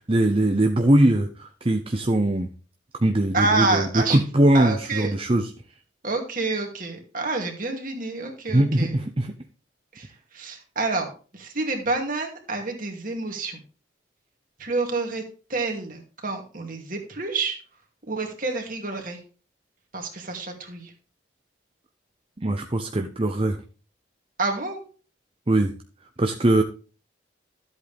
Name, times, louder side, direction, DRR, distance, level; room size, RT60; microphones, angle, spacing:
voice 1, 0.1-2.5 3.0-5.5 8.5-9.3 22.4-23.6 25.5-25.7 26.2-26.6, right 1 dB, 30° right, 5 dB, 0.8 m, -21 dB
voice 2, 3.3-4.2 4.5-5.1 6.0-9.0 9.9-10.1 10.3-11.1 11.3-13.6 14.6-15.2 15.5-17.6 18.1-19.2 19.9-20.9 24.4-24.8, right 3 dB, 45° right, 3 dB, 2.5 m, -28 dB
13.0 x 8.2 x 3.5 m, 0.36 s
head